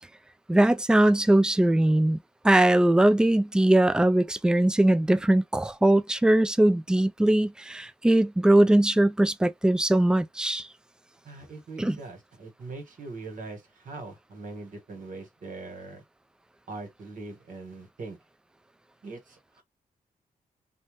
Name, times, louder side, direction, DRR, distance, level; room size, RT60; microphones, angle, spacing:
voice 1, 0.5-2.2 2.4-10.7 11.8-12.0, right 1 dB, 5° right, 0.3 m, -21 dB
voice 2, 11.2-16.0 16.7-18.2 19.0-19.6, right 3 dB, 60° right, 1.4 m, -41 dB
2.6 x 2.2 x 3.2 m
cardioid pair, 75°, 15 cm